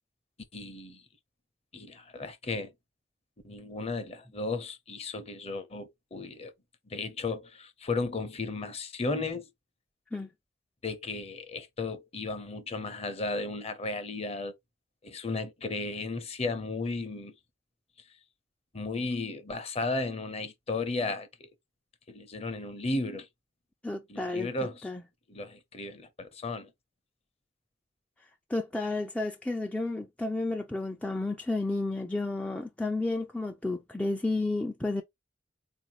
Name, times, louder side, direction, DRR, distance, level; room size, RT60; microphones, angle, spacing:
voice 1, 0.5-1.0 1.7-2.7 3.4-6.5 6.9-9.5 10.8-14.5 15.0-17.3 18.7-21.5 22.1-23.3 24.1-24.9 25.3-26.7, left 3 dB, 35° left, 0.7 m, -34 dB
voice 2, 23.8-24.5 24.8-25.0 28.5-35.0, left 2 dB, 5° left, 0.3 m, -31 dB
4.2 x 2.6 x 2.9 m
head